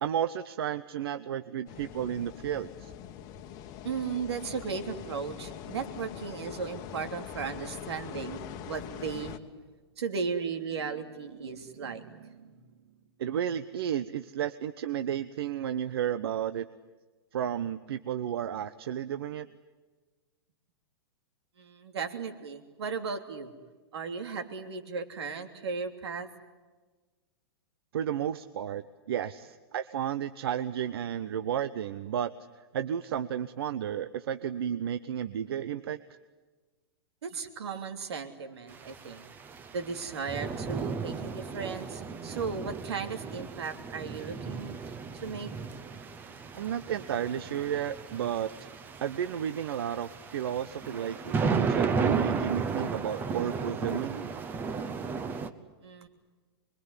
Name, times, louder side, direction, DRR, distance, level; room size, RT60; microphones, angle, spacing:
voice 1, 0.0-2.9 13.2-16.7 17.3-19.5 27.9-32.3 32.7-36.0 46.5-48.7 49.0-54.3, right 9 dB, 70° right, 12 dB, 0.9 m, -32 dB
sound 1, 1.7-9.4, left 10 dB, 30° left, 1.3 m, -43 dB
voice 2, 3.8-9.4 10.0-12.5 21.6-23.5 23.9-26.3 37.2-39.2 39.7-44.8 45.2-45.5 55.8-56.1, right 5 dB, 85° right, 6 dB, 3.2 m, -36 dB
sound 2, 38.7-55.5, right 5 dB, 15° right, 0.9 m, -34 dB
25.0 x 22.5 x 9.8 m, 1.3 s
supercardioid pair, 165°, 13 cm